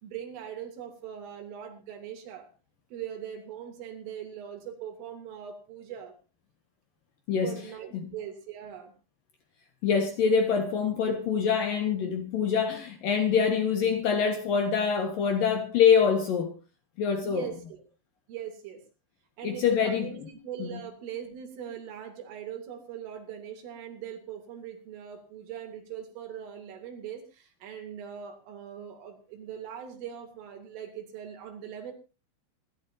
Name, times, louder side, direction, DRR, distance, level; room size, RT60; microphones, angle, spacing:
voice 1, 0.0-2.5 2.9-6.1 7.4-8.9 17.2-17.8 18.3-18.8 19.4-31.9, right 9 dB, 80° right, 5.5 m, -41 dB
voice 2, 9.8-16.5 17.0-17.4 19.4-20.1 20.6-20.8, left 6 dB, 65° left, 2.4 m, -25 dB
26.0 x 12.0 x 2.7 m
omnidirectional pair, 5.7 m